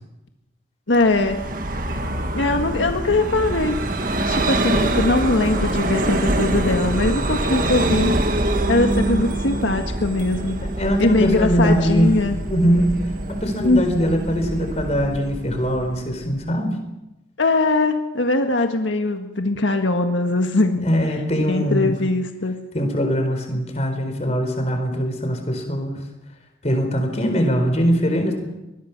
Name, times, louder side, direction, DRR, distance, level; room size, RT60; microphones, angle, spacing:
voice 1, 0.9-1.5 2.3-3.8 4.3-8.1 8.7-10.7 11.0-12.3 13.6-14.0 17.4-20.9 21.5-22.5, left 2 dB, 90° left, 5 dB, 1.6 m, -21 dB
Vehicle, 1.0-16.4, right 1 dB, 45° right, 1.7 m, -25 dB
voice 2, 10.6-12.1 12.5-13.0 13.3-16.8 20.8-21.9 22.7-26.0 26.6-28.3, equal, 35° left, 5 dB, 4.3 m, -21 dB
24.0 x 20.5 x 6.0 m, 0.97 s
head